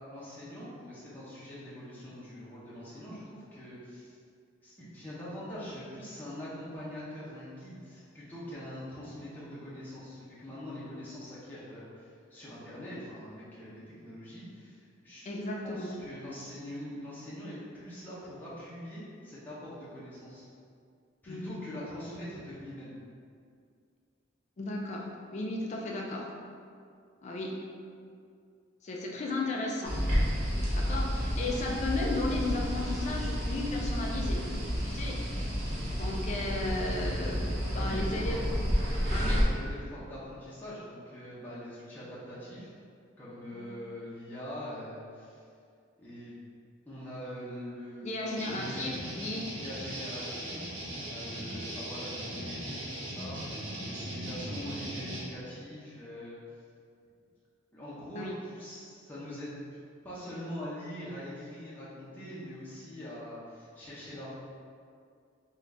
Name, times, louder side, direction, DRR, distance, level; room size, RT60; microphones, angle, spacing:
voice 1, 0.1-4.2 4.6-15.2 15.6-20.5 21.2-23.0 37.7-38.5 39.2-42.7 43.2-45.4 46.0-46.4 46.9-49.2 49.5-56.4 57.7-59.5 60.0-64.3, equal, 10° left, -10 dB, 0.7 m, -43 dB
voice 2, 15.3-15.9 21.3-21.7 24.6-26.4 27.2-27.6 28.8-30.0 30.7-34.5 34.8-35.2 36.0-38.4 39.1-39.4 43.5-43.8 48.0-49.5 58.2-58.4, left 2 dB, 35° left, -2 dB, 0.4 m, -35 dB
sound 1, 29.8-39.4, equal, 35° right, 0.7 m, -31 dB
sound 2, 48.4-55.2, right 1 dB, 90° right, 0.8 m, -39 dB
3.8 x 2.3 x 3.3 m, 2.2 s
head